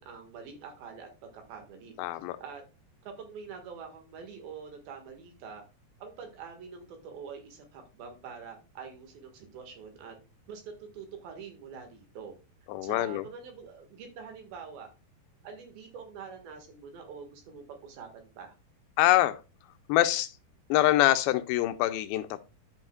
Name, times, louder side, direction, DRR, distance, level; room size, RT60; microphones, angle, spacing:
voice 1, 0.0-1.9 2.4-2.6 3.0-5.6 6.0-10.2 10.5-12.3 12.8-14.9 15.4-18.5, right 6 dB, 75° right, 3.4 m, -45 dB
voice 2, 2.0-2.4 12.7-13.3 19.0-19.4 19.9-20.3 20.7-22.4, left 15 dB, 90° left, 2.5 m, -25 dB
12.0 x 5.5 x 2.2 m
omnidirectional pair, 4.3 m